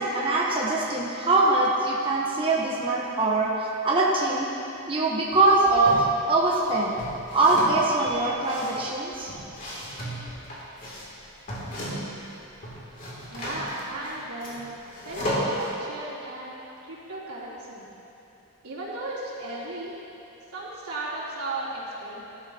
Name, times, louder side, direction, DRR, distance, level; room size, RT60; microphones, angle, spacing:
voice 1, 0.0-3.5 3.8-4.5 4.9-7.0 7.3-9.3, right 2 dB, 25° right, -4 dB, 1.0 m, -23 dB
sound 1, 5.3-6.1 6.4-12.2 12.5-15.7, equal, 40° left, 2.6 m, -34 dB
voice 2, 13.3-14.7 15.0-16.5 16.8-17.8 18.6-20.0 20.5-22.2, right 2 dB, 85° right, -7 dB, 3.2 m, -35 dB
17.5 x 12.5 x 2.9 m, 2.9 s
head